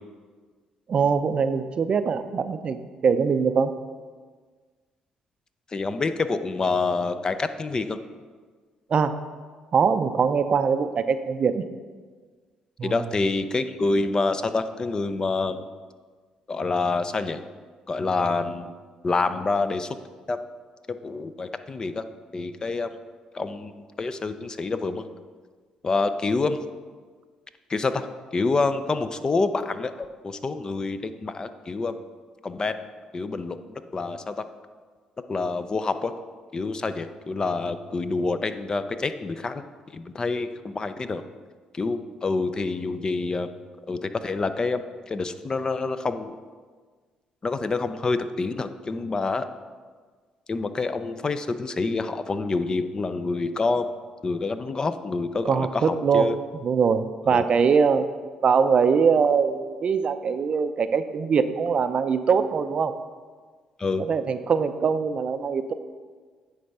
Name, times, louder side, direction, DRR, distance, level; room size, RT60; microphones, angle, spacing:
voice 1, 0.9-3.7 8.9-9.2 9.7-11.6 12.8-13.0 55.4-56.3 56.6-58.1 58.4-62.9 64.1-65.7, right 6 dB, 50° right, 10 dB, 0.4 m, -22 dB
voice 2, 5.7-8.0 12.8-15.6 16.5-17.4 17.9-18.7 19.0-20.0 20.3-20.5 20.9-22.0 22.3-22.9 23.3-23.7 24.0-25.1 25.8-26.6 27.7-28.1 28.3-29.9 30.2-32.0 32.4-32.8 33.1-33.6 33.9-34.5 35.3-36.1 36.5-39.6 39.9-41.2 41.7-43.5 43.9-46.3 47.4-49.5 50.5-53.9 54.2-56.3 57.3-57.4 63.8-64.1, left 3 dB, 30° left, 10 dB, 0.4 m, -27 dB
9.5 x 3.4 x 5.4 m, 1.5 s
supercardioid pair, 75°, 2 cm